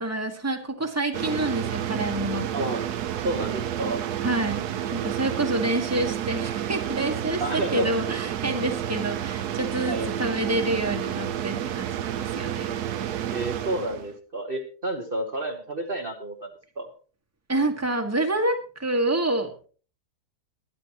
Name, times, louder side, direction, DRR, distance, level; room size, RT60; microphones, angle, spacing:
voice 1, 0.0-2.5 4.2-12.7 17.5-19.5, right 2 dB, 10° right, 4 dB, 1.7 m, -27 dB
sound 1, 1.1-14.1, right 10 dB, 70° right, 1.3 m, -30 dB
voice 2, 2.5-4.0 7.4-7.9 9.8-10.1 13.3-16.5 16.8-16.9, right 2 dB, 35° right, 1 dB, 1.4 m, -30 dB
22.0 x 10.5 x 3.0 m, 0.39 s
omnidirectional pair, 1.8 m